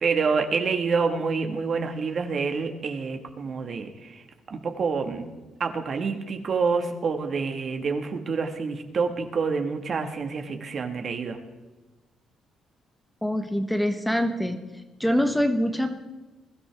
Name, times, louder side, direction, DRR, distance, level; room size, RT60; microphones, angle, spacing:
voice 1, 0.0-5.3 5.6-11.4, right 5 dB, 50° right, 5 dB, 1.6 m, -27 dB
voice 2, 13.2-14.6 15.0-16.0, equal, 5° left, 6 dB, 1.1 m, -24 dB
21.5 x 13.0 x 3.5 m, 1.1 s
cardioid pair, 90°, 0 cm